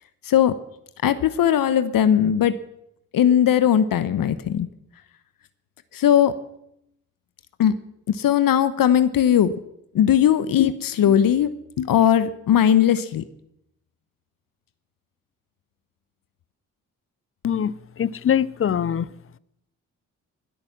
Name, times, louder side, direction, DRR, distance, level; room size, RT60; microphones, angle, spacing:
voice 1, 1.0-2.6 3.1-4.7 5.9-6.3 7.6-7.8 8.1-9.5 9.9-11.5 11.8-13.2, left 10 dB, 60° left, 0.9 m, -18 dB
voice 2, 17.4-19.1, left 9 dB, 35° left, 0.6 m, -23 dB
20.0 x 8.7 x 6.0 m
hypercardioid pair, 45°, 38 cm